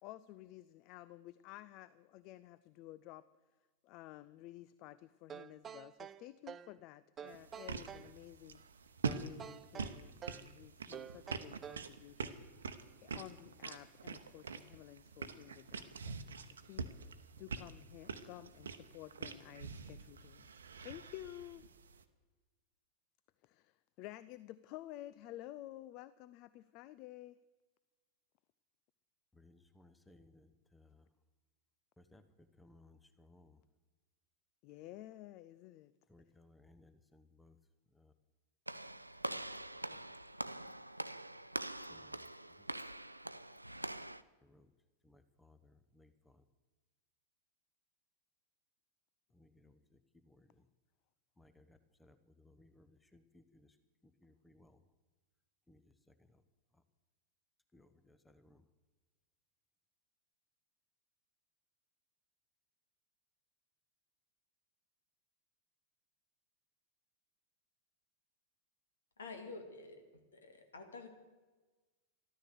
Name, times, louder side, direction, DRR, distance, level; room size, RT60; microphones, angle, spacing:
voice 1, 0.0-3.2 3.8-8.6 9.1-12.7 13.0-17.0 17.4-20.5 20.8-21.6 23.4-27.4 34.6-35.9, left 15 dB, 40° left, 0.4 m, -52 dB
sound 1, 5.3-6.8 7.2-8.1 9.0-10.5 10.9-11.9, right 8 dB, 25° right, 0.4 m, -49 dB
sound 2, 7.3-22.0, right 5 dB, 70° right, 0.9 m, -45 dB
voice 2, 29.4-31.0 32.0-32.2 32.6-33.6 36.1-37.5 37.9-38.1 39.3-39.4 39.9-40.0 41.9-42.2 44.4-44.7 45.0-46.4 49.3-49.8 50.3-50.5 51.4-53.7 54.2-54.8 55.7-55.8 57.7-58.6, left 2 dB, 5° left, 0.9 m, -64 dB
Walk footsteps / Slam, 38.7-44.2, right 1 dB, 85° right, 0.4 m, -44 dB
voice 3, 69.2-70.0 70.3-71.1, left 3 dB, 70° left, 2.1 m, -49 dB
13.5 x 13.0 x 6.8 m
figure-of-eight pair, 90°, 0 cm